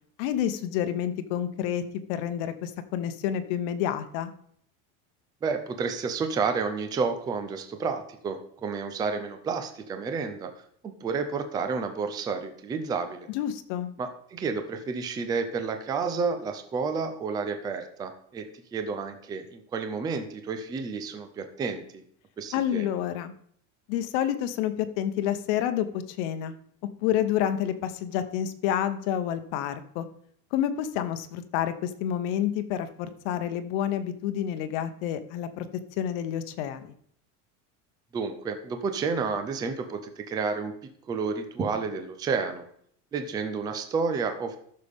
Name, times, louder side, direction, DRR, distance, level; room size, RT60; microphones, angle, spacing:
voice 1, 0.2-1.8 2.1-4.3 13.3-13.9 22.5-23.3 23.9-26.5 27.0-30.0 30.5-35.7 36.0-36.9, left 10 dB, 65° left, 10 dB, 0.9 m, -29 dB
voice 2, 5.4-10.5 10.8-13.3 14.0-18.5 18.7-22.0 22.4-22.9 38.1-40.7 41.1-42.6 43.1-44.6, right 5 dB, 10° right, 7 dB, 0.4 m, -30 dB
13.5 x 6.6 x 3.5 m, 0.65 s
cardioid pair, 180°, 37 cm